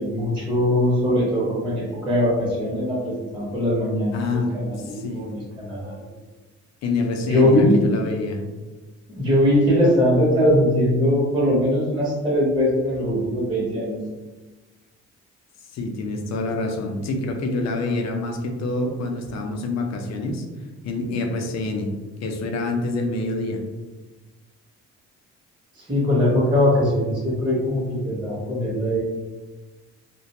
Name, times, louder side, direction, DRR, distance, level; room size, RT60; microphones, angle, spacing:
voice 1, 0.0-6.1 7.3-7.8 9.1-14.0 25.8-29.0, left 1 dB, 15° right, -7 dB, 0.8 m, -21 dB
voice 2, 4.1-4.5 4.8-5.2 6.8-8.4 15.7-20.4 20.8-21.9 22.2-23.6, left 2 dB, 60° left, 3 dB, 0.5 m, -26 dB
2.4 x 2.2 x 2.8 m, 1.2 s
cardioid pair, 90°, 30 cm